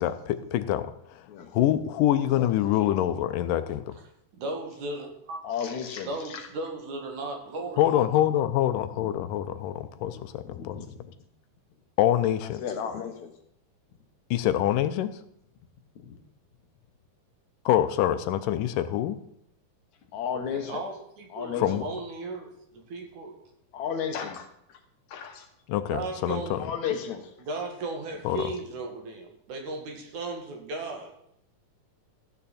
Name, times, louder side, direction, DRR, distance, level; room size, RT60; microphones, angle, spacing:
voice 1, 0.0-1.3 1.5-4.0 7.8-10.8 12.0-12.6 14.3-15.1 17.7-19.2 21.6-21.9 25.7-26.6 28.2-28.4, left 12 dB, 80° left, 11 dB, 2.3 m, -25 dB
voice 2, 4.4-5.4 6.1-8.0 20.5-23.3 25.9-26.5 27.4-31.1, right 2 dB, 65° right, 2 dB, 3.1 m, -36 dB
voice 3, 5.4-6.5 9.0-9.1 10.1-10.9 12.4-13.3 16.0-16.1 20.1-20.8 21.3-21.7 23.7-24.5 25.1-25.5 26.6-27.3, left 7 dB, 65° left, 5 dB, 2.2 m, -33 dB
14.0 x 9.3 x 4.2 m, 0.74 s
omnidirectional pair, 3.8 m